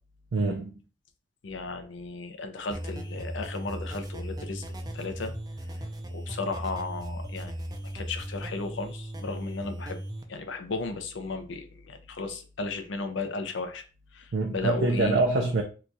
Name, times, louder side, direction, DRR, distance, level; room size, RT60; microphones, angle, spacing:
voice 1, 0.3-0.7 14.3-15.6, right 3 dB, 75° right, 0.5 m, -25 dB
voice 2, 1.4-4.6 4.9-5.3 6.1-7.5 7.8-10.0 10.3-13.8 14.1-15.4, left 3 dB, 85° left, 0.6 m, -35 dB
sound 1, 2.7-10.2, right 1 dB, 20° right, 0.4 m, -37 dB
2.9 x 2.3 x 3.9 m
head